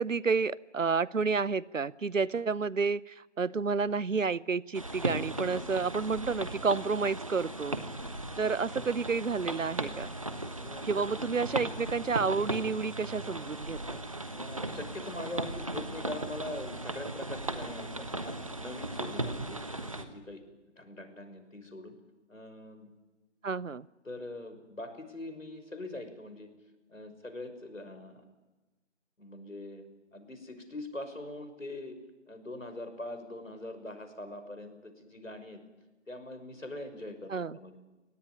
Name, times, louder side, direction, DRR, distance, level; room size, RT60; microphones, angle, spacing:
voice 1, 0.0-7.8 8.4-10.2 10.8-14.0 23.4-23.9 37.3-37.6, right 5 dB, 80° right, 22 dB, 0.9 m, -30 dB
sound 1, 4.7-20.1, right 1 dB, 25° right, 1.2 m, -37 dB
voice 2, 10.6-10.9 14.3-20.4 20.8-21.9 22.3-22.9 24.0-26.5 26.9-28.2 29.2-29.8 30.1-32.0 32.3-35.6 36.1-37.8, left 1 dB, 90° left, 8 dB, 5.9 m, -42 dB
24.5 x 18.5 x 9.9 m, 1.1 s
figure-of-eight pair, 170°, 38 cm